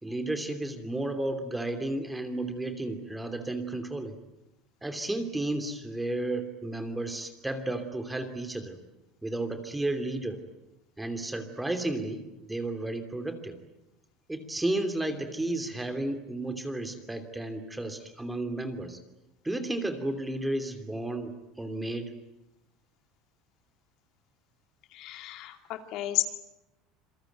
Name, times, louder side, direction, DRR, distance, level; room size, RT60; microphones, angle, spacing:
voice 1, 0.0-4.2 4.8-8.8 9.2-10.4 11.0-13.6 14.3-19.0 19.4-22.1, right 2 dB, 5° right, 7 dB, 2.9 m, -33 dB
voice 2, 24.9-26.2, left 15 dB, 55° left, 7 dB, 2.6 m, -32 dB
27.5 x 22.5 x 9.3 m, 0.91 s
cardioid pair, 140°, 0 cm